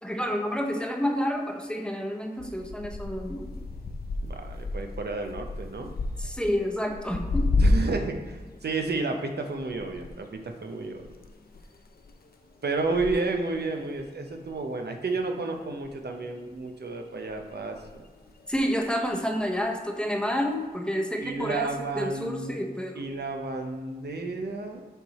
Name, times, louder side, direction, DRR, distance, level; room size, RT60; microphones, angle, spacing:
voice 1, 0.0-3.5 6.2-7.5 18.5-23.0, equal, 5° left, 1 dB, 0.8 m, -29 dB
sound 1, 2.4-8.2 8.5-15.6 15.8-16.6 17.3-19.1 19.5-19.9 20.6-20.7, left 2 dB, 65° left, 0.5 m, -32 dB
voice 2, 4.2-5.9 7.6-11.1 12.6-18.0 21.2-22.5 22.9-24.8, right 3 dB, 80° right, 4 dB, 0.7 m, -31 dB
6.7 x 4.7 x 4.1 m, 1.4 s
wide cardioid pair, 95°, 17 cm